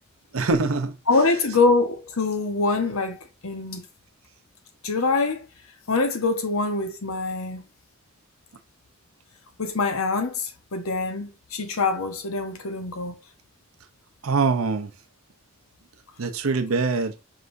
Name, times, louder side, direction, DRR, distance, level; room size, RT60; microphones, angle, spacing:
voice 1, 0.3-0.9 14.2-14.9 16.2-17.1, right 4 dB, 85° right, 0.7 m, -23 dB
voice 2, 1.1-3.9 4.8-5.5 5.9-7.6 9.6-13.2, left 3 dB, 90° left, 0.9 m, -24 dB
4.9 x 3.4 x 2.6 m
head